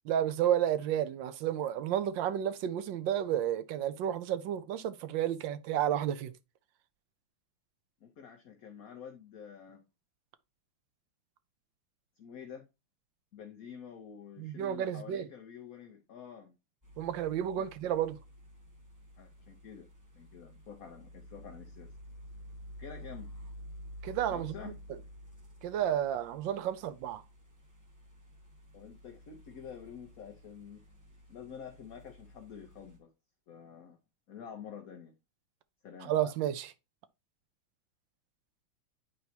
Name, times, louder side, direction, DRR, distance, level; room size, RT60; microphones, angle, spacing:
voice 1, 0.1-6.3 14.4-15.3 17.0-18.2 24.0-24.5 25.6-27.2 36.0-36.7, right 10 dB, 70° right, 1.2 m, -31 dB
voice 2, 8.0-9.8 12.2-12.6 13.3-16.6 17.6-17.7 19.2-19.9 20.1-21.9 22.8-23.3 24.3-24.8 28.7-30.8 31.3-33.1 33.5-34.0 34.3-35.1 35.8-36.1, left 7 dB, 55° left, 1.1 m, -48 dB
sound 1, 16.8-33.0, equal, 10° right, 1.2 m, -51 dB
9.4 x 4.6 x 2.8 m
omnidirectional pair, 2.4 m